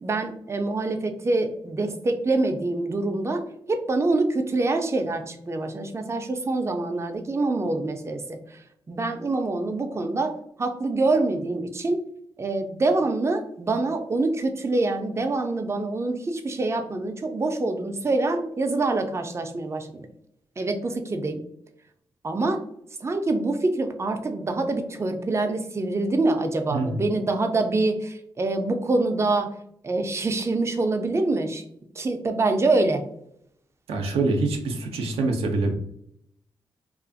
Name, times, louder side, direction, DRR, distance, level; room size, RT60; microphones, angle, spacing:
voice 1, 0.0-12.0 12.4-20.1 20.6-21.4 22.2-22.6 23.0-29.6 29.8-31.6 32.0-33.0, right 2 dB, 30° right, 5 dB, 0.4 m, -25 dB
voice 2, 33.9-35.8, right 3 dB, 85° right, 2 dB, 0.4 m, -25 dB
2.4 x 2.4 x 2.5 m, 0.72 s
supercardioid pair, 45°, 10 cm